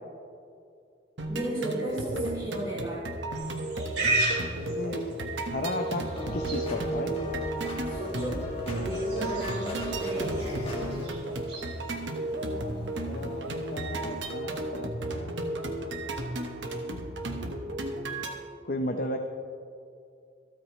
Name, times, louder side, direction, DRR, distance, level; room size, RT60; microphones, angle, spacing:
sound 1, 1.2-18.3, right 1 dB, 80° right, 1.3 m, -34 dB
voice 1, 1.3-3.0 7.9-8.4 8.7-10.6, right 1 dB, 20° right, -9 dB, 2.7 m, -34 dB
Livestock farm animals working animals, 3.3-14.2, right 2 dB, 60° right, 3.5 m, -37 dB
voice 2, 4.6-5.0 5.5-6.0 6.3-7.1 13.1-15.4 18.6-19.2, left 1 dB, 50° left, 4 dB, 0.7 m, -34 dB
sound 2, 6.0-11.1, equal, 30° left, 2.3 m, -35 dB
26.5 x 8.9 x 3.2 m, 2.4 s
head